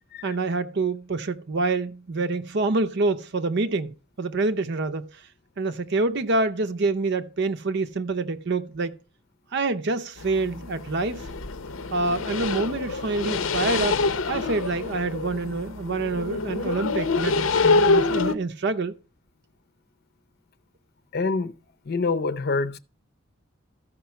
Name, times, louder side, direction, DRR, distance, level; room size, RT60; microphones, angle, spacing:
voice 1, 0.2-3.9 4.2-5.1 5.6-8.9 9.5-11.3 11.9-14.0 14.3-18.9, right 3 dB, 60° right, 0.7 m, -26 dB
sound 1, 10.2-18.3, left 3 dB, 85° left, 0.8 m, -26 dB
voice 2, 21.1-21.5 21.9-22.8, left 4 dB, 50° left, 0.7 m, -26 dB
14.0 x 5.2 x 5.7 m
head